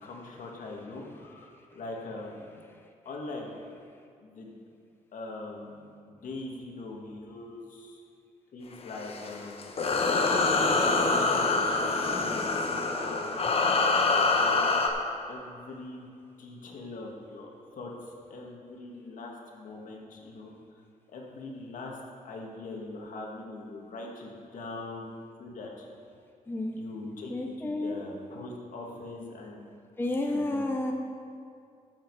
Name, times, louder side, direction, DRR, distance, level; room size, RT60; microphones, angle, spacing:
voice 1, 0.0-2.5 3.1-3.5 4.2-4.6 5.1-8.0 8.5-9.8 10.9-13.3 14.0-14.8 15.3-16.1 16.4-20.5 21.1-22.0 22.2-25.1 25.4-25.9 26.8-29.7 30.3-30.7, left 2 dB, 65° left, 0 dB, 1.9 m, -42 dB
sound 1, 8.9-14.9, left 3 dB, 45° left, 1.0 m, -25 dB
voice 2, 26.5-26.8 27.3-28.0 30.0-30.9, left 2 dB, 15° left, 2 dB, 0.7 m, -31 dB
13.0 x 7.5 x 4.7 m, 2.4 s
cardioid pair, 120°, 14 cm